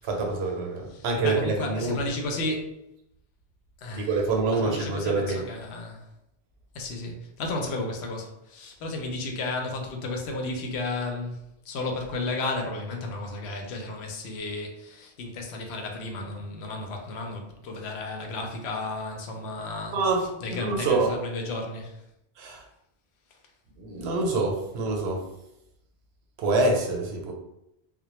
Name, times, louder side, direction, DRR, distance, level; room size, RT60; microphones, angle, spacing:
voice 1, 0.0-2.0 3.9-5.4 19.9-20.2 20.5-21.1 22.4-22.6 23.8-25.2 26.4-27.3, right 3 dB, 80° right, 1 dB, 0.8 m, -26 dB
voice 2, 0.9-2.8 3.8-6.1 6.7-11.4 11.6-22.0, left 2 dB, 90° left, 2 dB, 0.8 m, -33 dB
2.1 x 2.1 x 2.9 m, 0.83 s
omnidirectional pair, 1.1 m